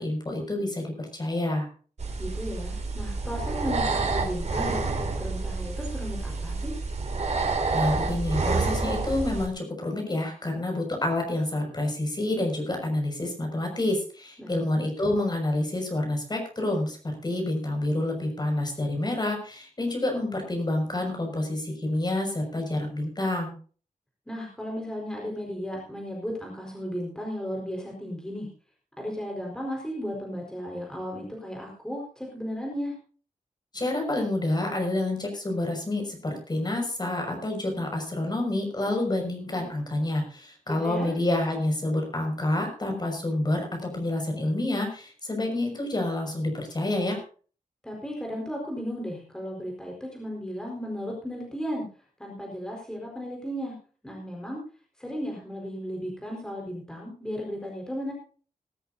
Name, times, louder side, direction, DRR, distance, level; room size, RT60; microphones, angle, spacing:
voice 1, 0.0-1.7 7.7-17.0 17.2-23.5 33.7-47.2, left 1 dB, 30° left, 3 dB, 6.0 m, -28 dB
sound 1, 2.0-9.5, right 3 dB, 55° right, 3.4 m, -28 dB
voice 2, 2.2-6.8 14.4-14.6 24.3-28.5 29.0-32.9 40.7-41.1 47.8-51.8 52.2-53.7 54.0-54.6 55.0-58.1, equal, 5° left, -1 dB, 4.6 m, -35 dB
20.0 x 13.5 x 2.7 m, 0.39 s
wide cardioid pair, 140°, 14 cm